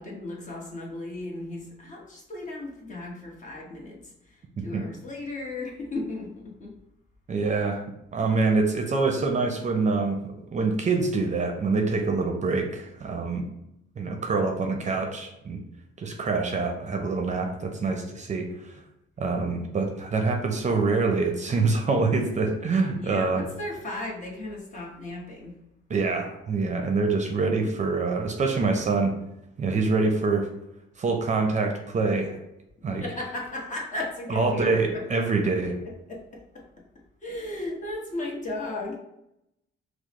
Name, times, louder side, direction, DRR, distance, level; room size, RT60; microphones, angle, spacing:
voice 1, 0.0-4.1 4.6-6.7 22.9-25.5 32.9-35.2 36.1-36.4 37.2-39.0, left 2 dB, 40° left, -2 dB, 1.1 m, -35 dB
voice 2, 7.3-7.8 8.1-10.2 10.5-13.4 14.0-15.6 16.0-18.5 19.2-23.5 25.9-29.1 29.6-30.5 31.0-32.4 32.8-33.0 34.3-35.7, right 3 dB, 35° right, 3 dB, 0.6 m, -25 dB
4.7 x 2.0 x 3.0 m, 0.83 s
cardioid pair, 90°, 20 cm